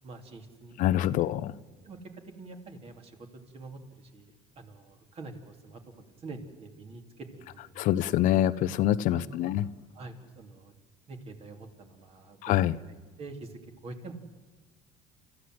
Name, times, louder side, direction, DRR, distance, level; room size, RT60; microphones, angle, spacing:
voice 1, 0.0-1.3 1.8-2.0 2.4-7.9 9.1-9.5 9.9-10.7 11.1-12.8 13.2-14.1, right 3 dB, 40° right, 5 dB, 3.0 m, -46 dB
voice 2, 0.8-1.5 7.8-9.7 12.4-12.8, left 13 dB, 65° left, 15 dB, 0.7 m, -25 dB
29.0 x 14.0 x 7.8 m, 1.3 s
supercardioid pair, 105°, 15 cm